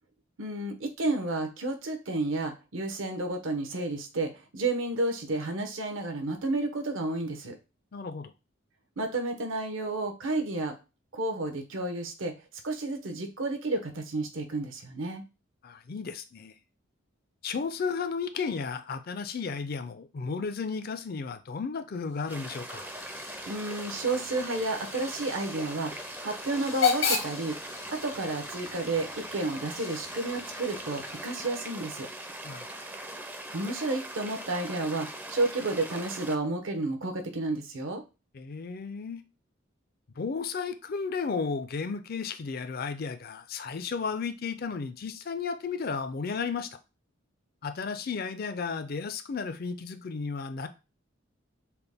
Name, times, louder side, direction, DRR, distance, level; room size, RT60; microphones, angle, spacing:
voice 1, 0.4-7.5 9.0-10.7 11.1-12.3 12.6-15.2 23.5-25.9 26.2-27.6 27.9-32.1 33.5-38.0, right 2 dB, 75° right, 0.9 m, -31 dB
voice 2, 7.9-8.3 15.6-16.5 17.4-22.9 32.4-32.7 38.3-39.2 40.2-46.8 47.6-50.7, left 5 dB, 50° left, 0.4 m, -33 dB
Hiss / Train / Alarm, 22.1-31.7, left 6 dB, 80° left, 1.1 m, -35 dB
sound 1, 22.3-36.4, right 1 dB, 10° right, 0.4 m, -41 dB
5.8 x 2.2 x 3.4 m
head